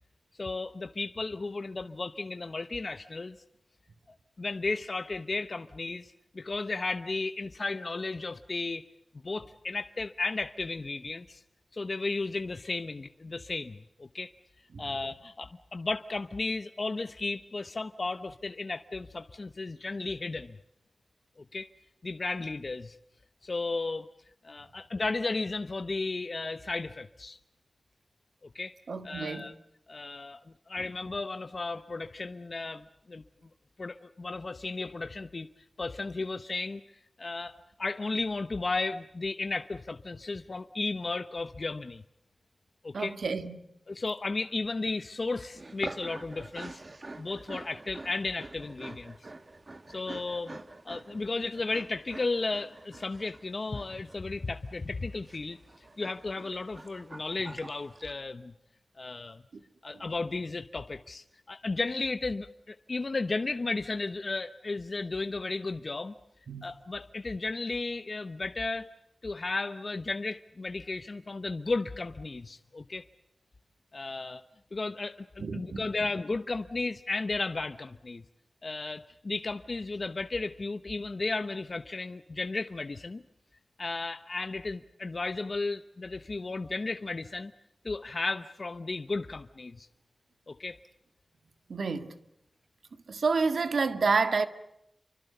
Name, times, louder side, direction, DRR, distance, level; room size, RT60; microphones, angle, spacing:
voice 1, 0.4-3.4 4.4-8.8 9.2-11.4 11.7-14.3 14.8-20.6 21.5-21.7 22.0-23.0 23.4-24.1 24.4-27.4 28.5-28.7 29.0-29.5 29.9-30.4 30.7-33.2 33.8-35.5 35.8-36.8 37.2-42.0 42.8-43.1 43.9-46.8 47.2-49.2 49.9-50.6 50.9-58.5 59.0-59.4 59.8-66.1 66.6-68.9 69.2-73.1 73.9-74.4 74.7-75.2 75.5-78.2 78.6-83.2 83.8-87.5 87.8-89.9 90.5-90.8, left 3 dB, 50° left, 0.9 m, -34 dB
voice 2, 28.9-29.5 42.9-43.7 59.9-60.0 66.5-66.6 75.4-75.9 91.7-92.2 93.1-94.5, right 4 dB, 85° right, 1.8 m, -29 dB
sound 1, 45.4-58.1, right 2 dB, 40° right, 1.6 m, -47 dB
28.5 x 24.5 x 6.8 m
wide cardioid pair, 95°, 0 cm